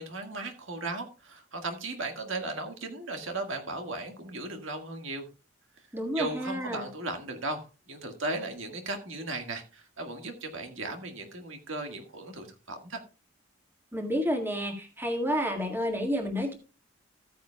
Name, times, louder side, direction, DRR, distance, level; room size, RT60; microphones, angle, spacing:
voice 1, 0.0-5.2 6.1-13.0, right 2 dB, 80° right, 5 dB, 1.7 m, -36 dB
voice 2, 5.9-6.9 13.9-16.5, equal, 10° right, 3 dB, 1.8 m, -30 dB
14.5 x 9.2 x 2.3 m, 0.31 s
head